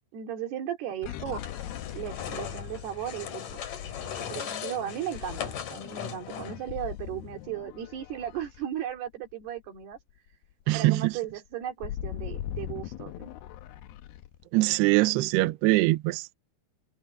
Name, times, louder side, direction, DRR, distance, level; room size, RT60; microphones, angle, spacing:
voice 1, 0.1-1.7 1.9-3.4 4.3-10.0 10.7-13.3, right 10 dB, 60° right, 4.6 m, -36 dB
sound 1, 1.0-9.4 9.8-10.0 10.3-14.4, left 12 dB, 85° left, 2.2 m, -41 dB
sound 2, 1.3-6.8, left 8 dB, 50° left, 3.3 m, -38 dB
voice 2, 10.7-11.1 14.5-16.4, right 20 dB, 80° right, 2.5 m, -23 dB
omnidirectional pair, 5.5 m